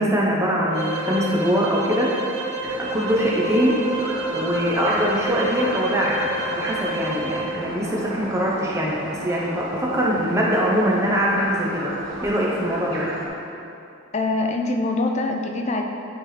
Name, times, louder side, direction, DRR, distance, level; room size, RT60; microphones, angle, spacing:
voice 1, 0.0-2.1 2.8-3.8 4.3-11.9 12.2-13.1, equal, 15° right, -4 dB, 0.7 m, -22 dB
sound 1, 0.7-7.5, right 1 dB, 30° right, 1.1 m, -29 dB
sound 2, 2.6-13.3, right 1 dB, 70° right, 1.1 m, -34 dB
voice 2, 14.1-15.8, left 2 dB, 35° left, 3 dB, 0.5 m, -24 dB
8.9 x 4.3 x 3.2 m, 2.7 s
head